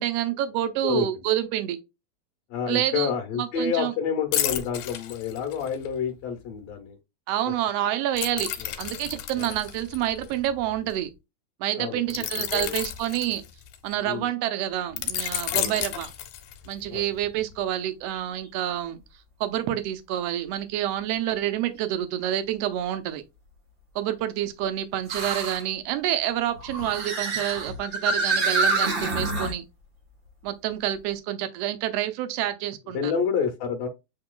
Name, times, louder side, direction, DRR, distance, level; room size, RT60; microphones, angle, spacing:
voice 1, 0.0-1.8 2.7-3.1 3.4-3.9 7.3-8.5 8.8-11.1 11.6-13.4 13.8-16.1 16.7-19.0 19.4-23.2 23.9-29.6 30.4-33.1, right 12 dB, 75° right, 1.5 m, -28 dB
voice 2, 2.5-7.0 7.5-7.6 8.6-8.7 9.4-9.5 11.8-12.8 14.0-14.3 15.5-15.7 16.9-17.1 32.9-33.9, left 7 dB, 70° left, 1.9 m, -29 dB
sound 1, 4.3-5.9 8.2-10.9 12.1-13.9 15.0-16.8 17.2-17.4, left 11 dB, 85° left, 2.3 m, -31 dB
sound 2, 15.2-15.4 16.0-16.1 18.1-18.2 21.8-21.9 25.1-25.6 26.6-29.5, right 3 dB, 40° right, 1.1 m, -27 dB
8.2 x 2.9 x 2.2 m
omnidirectional pair, 3.5 m